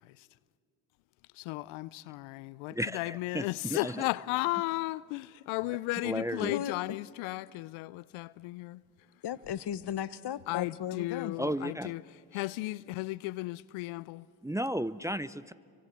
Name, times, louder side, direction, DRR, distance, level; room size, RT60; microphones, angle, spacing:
voice 1, 1.4-8.8 10.5-12.0 12.3-14.2, left 20 dB, 80° left, 0.6 m, -35 dB
voice 2, 2.7-4.0 5.9-6.6 11.4-11.9 14.4-15.5, equal, 5° right, 0.6 m, -34 dB
voice 3, 6.4-7.0 9.2-11.4, left 10 dB, 55° left, 1.1 m, -36 dB
28.0 x 24.5 x 7.4 m
hypercardioid pair, 45°, 48 cm